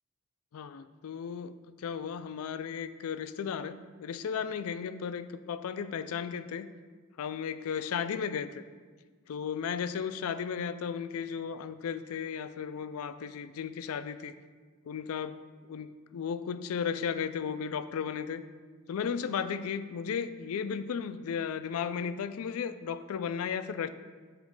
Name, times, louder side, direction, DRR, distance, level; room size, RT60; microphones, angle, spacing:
voice 1, 0.5-1.5 1.8-6.7 7.2-8.6 9.3-14.3 14.9-18.5 18.9-23.9, left 7 dB, 70° left, 12 dB, 0.3 m, -35 dB
7.2 x 3.1 x 5.3 m, 1.5 s
head